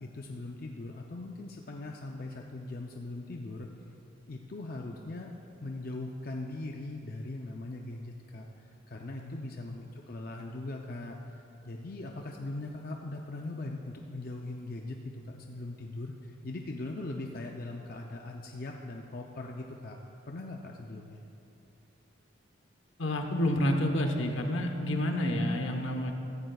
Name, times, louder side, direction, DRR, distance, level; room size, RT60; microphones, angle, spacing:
voice 1, 0.0-3.7 4.3-5.3 5.6-20.0 20.3-21.2, left 2 dB, 45° left, 1 dB, 0.5 m, -40 dB
voice 2, 23.0-26.1, left 1 dB, 75° left, 4 dB, 1.0 m, -29 dB
15.5 x 14.5 x 2.3 m, 2.8 s
head